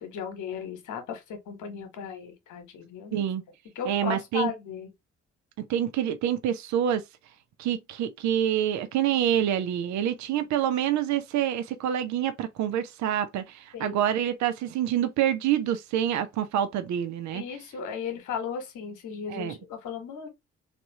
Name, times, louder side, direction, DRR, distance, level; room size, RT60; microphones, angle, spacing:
voice 1, 0.0-3.2 3.7-4.9 13.7-14.0 17.3-20.3, left 7 dB, 65° left, 1.1 m, -36 dB
voice 2, 3.1-3.4 3.8-4.5 5.7-7.0 7.6-17.4 19.3-19.6, right 10 dB, 60° right, 0.7 m, -27 dB
3.3 x 2.6 x 2.8 m
hypercardioid pair, 40°, 33 cm